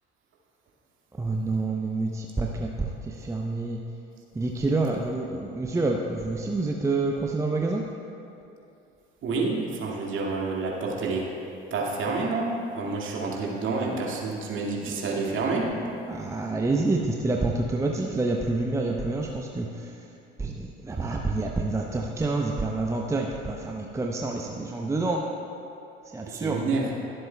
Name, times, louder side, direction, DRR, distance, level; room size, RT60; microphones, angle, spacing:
voice 1, 1.2-3.8 4.3-7.8 14.8-15.2 16.1-19.9 20.4-25.2 26.1-26.6, right 3 dB, 10° right, 1 dB, 0.7 m, -28 dB
voice 2, 9.2-11.3 11.7-15.6 26.3-26.9, right 3 dB, 40° right, -3 dB, 2.0 m, -28 dB
22.0 x 7.6 x 2.3 m, 2.8 s
figure-of-eight pair, 60°, 30 cm